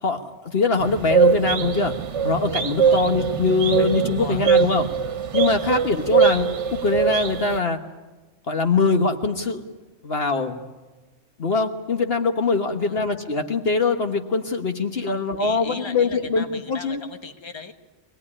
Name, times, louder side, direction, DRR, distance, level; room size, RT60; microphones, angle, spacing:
voice 1, 0.0-1.9 2.2-4.9 5.3-7.8 8.5-9.6 10.0-10.6 11.4-17.0, left 4 dB, 55° left, 6 dB, 1.5 m, -23 dB
sound 1, 0.8-7.6, right 7 dB, 80° right, 1.3 m, -22 dB
voice 2, 4.0-4.5 5.5-5.9 12.7-13.0 15.1-17.7, left 4 dB, 25° left, 5 dB, 1.4 m, -38 dB
24.5 x 18.0 x 9.9 m, 1.2 s
omnidirectional pair, 1.2 m